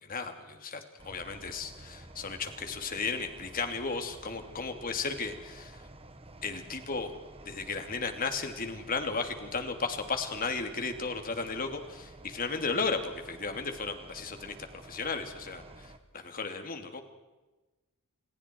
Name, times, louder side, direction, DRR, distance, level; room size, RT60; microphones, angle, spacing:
voice 1, 0.0-5.8 6.4-7.1 7.4-14.5 14.8-17.0, left 4 dB, 40° left, 6 dB, 3.0 m, -35 dB
sound 1, 1.0-16.0, right 2 dB, 25° right, 1.8 m, -51 dB
29.0 x 28.5 x 4.8 m, 1.2 s
head